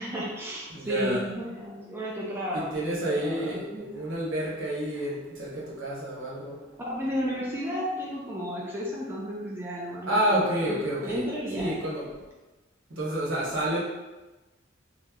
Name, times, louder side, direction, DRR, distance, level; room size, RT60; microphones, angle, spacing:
voice 1, 0.0-4.1 5.0-5.1 6.8-11.8, equal, 10° right, -4 dB, 0.4 m, -33 dB
voice 2, 0.7-1.2 2.5-6.6 10.1-11.3 11.6-12.1 12.9-13.8, right 1 dB, 80° right, -6 dB, 1.0 m, -29 dB
3.0 x 2.0 x 3.5 m, 1.1 s
head